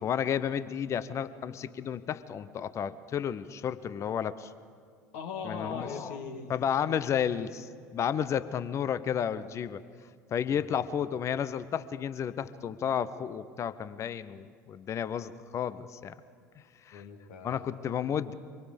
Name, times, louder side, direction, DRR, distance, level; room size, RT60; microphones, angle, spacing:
voice 1, 0.0-4.5 5.4-6.2 6.5-9.8 10.3-16.1 16.9-17.0 17.4-18.3, left 8 dB, 35° left, 16 dB, 0.8 m, -32 dB
voice 2, 5.1-6.5 10.4-10.9 16.9-17.8, left 5 dB, 60° left, 4 dB, 2.3 m, -40 dB
25.0 x 23.0 x 5.3 m, 2.2 s
figure-of-eight pair, 65°, 8 cm